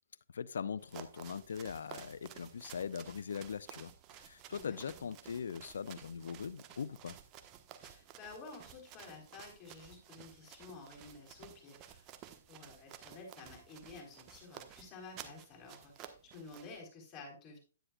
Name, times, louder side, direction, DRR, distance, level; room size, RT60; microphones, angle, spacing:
voice 1, 0.3-7.2, left 6 dB, 70° left, 0.6 m, -41 dB
sound 1, 0.8-16.8, right 10 dB, 30° right, 1.1 m, -54 dB
voice 2, 4.5-4.8 7.8-12.1 12.5-17.6, left 3 dB, 25° left, 4.0 m, -52 dB
10.0 x 9.8 x 2.3 m
hypercardioid pair, 130°, 0 cm